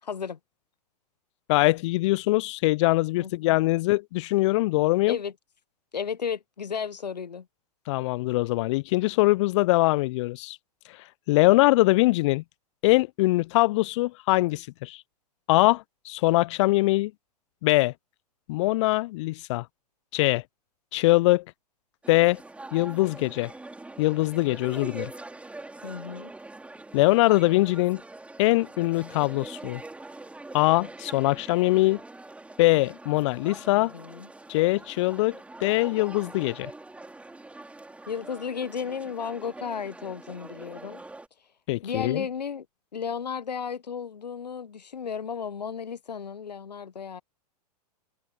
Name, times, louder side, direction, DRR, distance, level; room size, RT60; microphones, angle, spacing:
voice 1, 0.0-0.4 3.2-3.6 5.1-5.3 5.9-7.5 25.8-26.3 33.7-34.3 38.1-41.0 41.8-42.7 42.9-47.2, left 6 dB, 80° left, 1.0 m, -34 dB
voice 2, 1.5-5.2 7.9-10.6 11.3-12.4 12.8-15.0 15.5-17.1 17.6-17.9 18.5-19.6 20.1-20.4 20.9-21.4 22.1-22.4 22.7-23.5 24.0-25.1 26.9-28.0 28.4-29.8 30.5-32.0 32.6-33.9 34.5-36.7 41.7-42.2, left 20 dB, 45° left, 0.5 m, -22 dB
sound 1, 22.0-41.3, right 2 dB, 5° right, 5.1 m, -44 dB
figure-of-eight pair, 105°, 21 cm